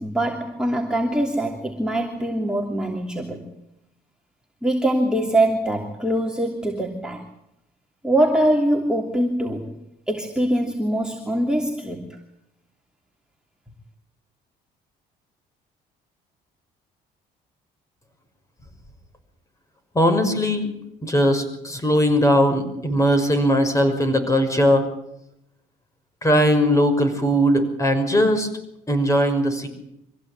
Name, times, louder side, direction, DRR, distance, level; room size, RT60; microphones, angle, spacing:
voice 1, 0.0-3.5 4.6-7.2 8.0-12.2, right 1 dB, 5° right, -1 dB, 3.0 m, -23 dB
voice 2, 19.9-20.7 21.0-24.9 26.2-28.5 28.9-29.7, equal, 20° left, 7 dB, 5.9 m, -19 dB
25.0 x 16.0 x 8.8 m, 0.81 s
cardioid pair, 110°, 17 cm